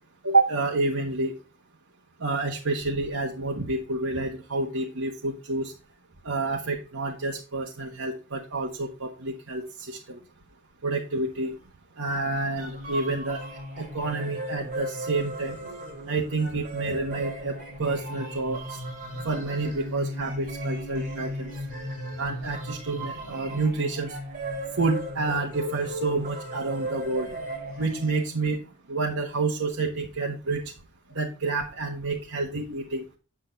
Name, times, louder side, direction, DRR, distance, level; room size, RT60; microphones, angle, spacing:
voice 1, 0.2-1.3 2.2-5.7 6.2-10.2 10.8-11.5 12.0-13.5 13.8-15.6 16.1-18.8 19.2-21.5 22.2-24.2 24.8-27.3 27.8-28.6 28.9-30.6 31.1-33.0, right 3 dB, 80° right, 0 dB, 1.4 m, -28 dB
sound 1, 12.2-28.3, equal, 40° right, 4.0 m, -36 dB
8.4 x 8.3 x 2.7 m, 0.34 s
head